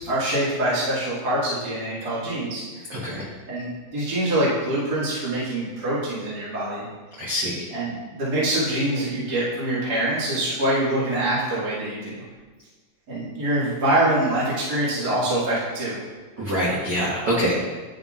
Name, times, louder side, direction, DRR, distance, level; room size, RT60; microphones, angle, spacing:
voice 1, 0.0-2.9 3.5-6.8 7.7-12.2 13.1-16.0, right 1 dB, 35° right, -10 dB, 2.1 m, -25 dB
voice 2, 2.9-3.2 7.2-7.6 16.4-17.5, equal, 70° right, -6 dB, 1.0 m, -25 dB
11.5 x 5.5 x 2.4 m, 1.3 s
omnidirectional pair, 3.8 m